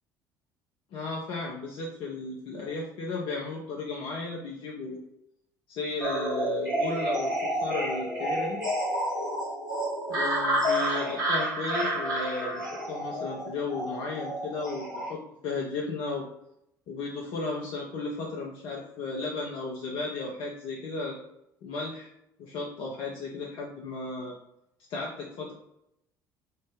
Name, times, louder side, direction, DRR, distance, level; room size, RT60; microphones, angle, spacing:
voice 1, 0.9-5.0 5.7-8.6 10.1-16.3 16.9-21.2 21.6-22.1 22.4-24.4 24.9-25.5, left 3 dB, 55° left, -2 dB, 0.6 m, -35 dB
sound 1, 6.0-15.1, right 1 dB, 80° right, 1.0 m, -30 dB
3.2 x 2.0 x 3.3 m, 0.79 s
figure-of-eight pair, 55°, 10 cm